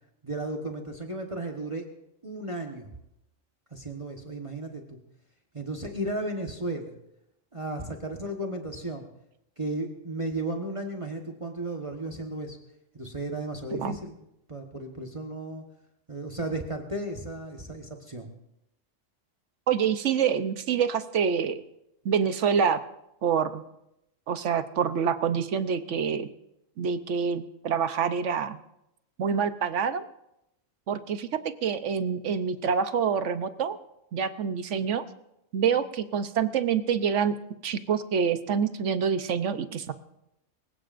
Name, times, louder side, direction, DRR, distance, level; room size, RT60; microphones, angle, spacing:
voice 1, 0.2-1.9 2.2-2.9 3.7-5.0 5.5-6.9 7.5-9.1 9.6-12.6 12.9-14.1 14.5-15.6 16.1-18.3, right 1 dB, 25° right, 2 dB, 1.3 m, -34 dB
voice 2, 19.7-21.6 22.0-22.8 23.2-23.6 24.3-26.3 26.8-28.6 29.2-30.1 30.9-31.3 31.6-33.8 34.1-35.0 35.5-37.4 37.6-39.9, right 7 dB, 70° right, 11 dB, 1.1 m, -26 dB
24.5 x 16.0 x 2.6 m, 0.84 s
omnidirectional pair, 1.3 m